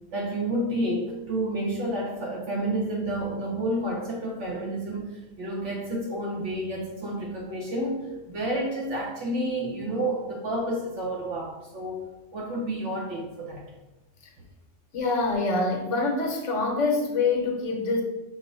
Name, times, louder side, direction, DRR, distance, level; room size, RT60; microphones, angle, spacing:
voice 1, 0.1-12.0 12.3-13.6, right 1 dB, 70° right, -2 dB, 1.0 m, -30 dB
voice 2, 14.9-18.0, left 3 dB, 75° left, 2 dB, 1.2 m, -25 dB
6.1 x 2.1 x 3.9 m, 1.0 s
omnidirectional pair, 1.3 m